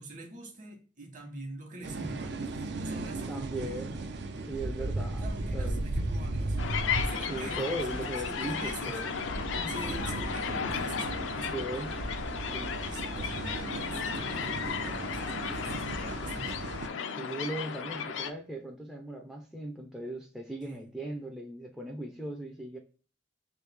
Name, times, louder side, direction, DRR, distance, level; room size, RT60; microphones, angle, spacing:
voice 1, 0.0-3.8 5.2-6.6 7.0-9.0 9.7-12.0 12.8-16.8 20.6-20.9, right 2 dB, 45° right, 1.1 m, -45 dB
sound 1, 1.8-16.9, right 2 dB, 60° right, 0.4 m, -36 dB
voice 2, 3.3-4.0 4.5-5.8 7.3-9.1 9.6-9.8 11.5-12.0 12.5-12.9 17.2-22.8, right 1 dB, ahead, 0.4 m, -38 dB
sound 2, 6.6-18.3, left 6 dB, 85° left, 0.5 m, -35 dB
3.2 x 2.7 x 3.3 m
head